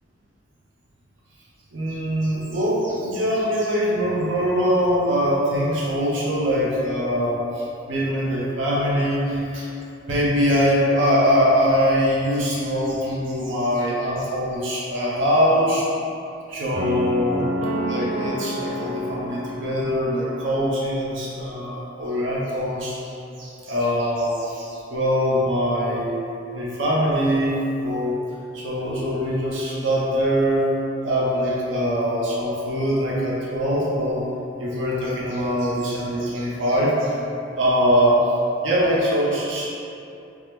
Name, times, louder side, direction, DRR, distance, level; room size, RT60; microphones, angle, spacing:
voice 1, 1.7-9.7 10.1-15.9 16.5-17.5 17.8-23.0 23.4-26.2 26.5-28.2 28.5-30.7 31.0-34.3 34.6-37.2 37.6-38.2 38.6-39.7, equal, 75° right, -5 dB, 0.6 m, -22 dB
sound 1, 16.7-20.9, equal, 35° right, 0.5 m, -29 dB
3.4 x 2.0 x 3.0 m, 2.6 s
head